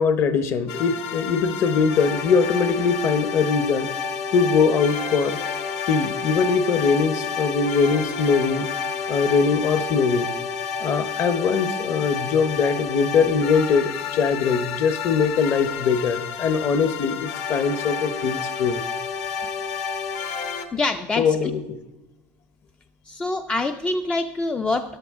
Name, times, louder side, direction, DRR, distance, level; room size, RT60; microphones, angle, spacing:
voice 1, 0.0-3.9 4.3-5.4 5.9-8.7 9.1-10.3 10.8-18.8 21.1-21.7, left 5 dB, 35° left, 12 dB, 0.8 m, -22 dB
sound 1, 0.7-20.6, left 6 dB, 60° left, 1.1 m, -30 dB
voice 2, 20.7-21.4 23.1-25.0, left 2 dB, 10° left, 8 dB, 0.3 m, -25 dB
14.0 x 11.0 x 3.6 m, 1.0 s
cardioid pair, 165°, 7 cm